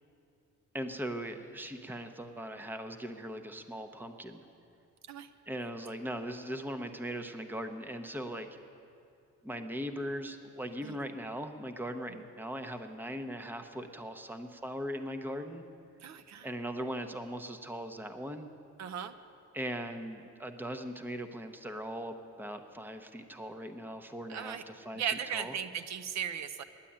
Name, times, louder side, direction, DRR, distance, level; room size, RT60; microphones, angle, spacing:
voice 1, 0.7-4.4 5.5-8.5 9.4-15.6 16.4-18.5 19.5-25.5, equal, 5° right, 7 dB, 0.8 m, -39 dB
voice 2, 16.0-16.5 18.8-19.1 24.3-24.6 24.9-26.6, right 8 dB, 65° right, 10 dB, 0.6 m, -36 dB
10.0 x 9.0 x 8.6 m, 2.5 s
cardioid pair, 90°, 30 cm